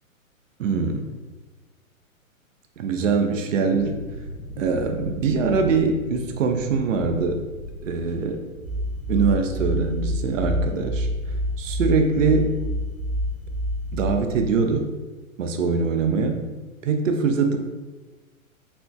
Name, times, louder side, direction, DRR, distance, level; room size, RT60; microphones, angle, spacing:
voice 1, 0.6-1.1 2.8-4.0 4.6-7.4 7.8-8.5 9.1-11.1 11.6-12.6 13.9-14.9 15.4-16.5 16.8-17.6, right 4 dB, 65° right, 5 dB, 0.6 m, -23 dB
sound 1, 3.7-12.0, left 1 dB, 65° left, 0.6 m, -39 dB
sound 2, 8.6-14.2, equal, 15° right, 0.4 m, -27 dB
4.4 x 3.3 x 2.2 m, 1.2 s
figure-of-eight pair, 120°, 42 cm